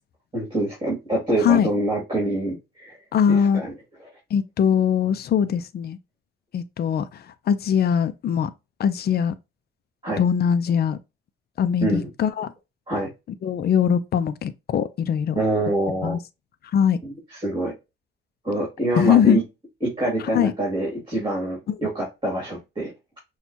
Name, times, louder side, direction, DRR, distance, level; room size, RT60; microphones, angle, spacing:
voice 1, 0.3-3.0 3.3-3.7 10.0-10.2 11.8-12.1 12.9-13.1 15.3-16.2 17.0-17.1 17.4-17.7 18.4-19.4 19.8-22.9, right 1 dB, 25° right, 2.4 m, -25 dB
voice 2, 3.1-3.6 4.3-6.0 6.5-8.5 8.8-9.3 10.2-11.0 11.6-12.5 13.4-15.4 16.0-16.2 16.7-17.0 19.0-19.4 20.3-20.5 21.7-21.8, left 8 dB, 55° left, 0.5 m, -21 dB
6.0 x 2.4 x 2.7 m
cardioid pair, 90°, 20 cm